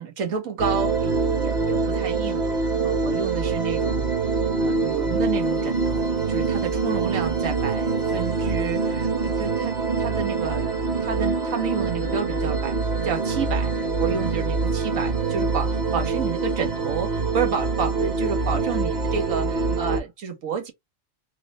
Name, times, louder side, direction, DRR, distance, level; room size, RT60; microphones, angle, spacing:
voice 1, 0.0-2.5 2.8-4.2 4.5-10.7 11.0-20.7, right 7 dB, 85° right, 1.4 m, -30 dB
sound 1, 0.6-20.0, right 4 dB, 40° right, 0.9 m, -24 dB
3.6 x 2.0 x 3.8 m
omnidirectional pair, 1.4 m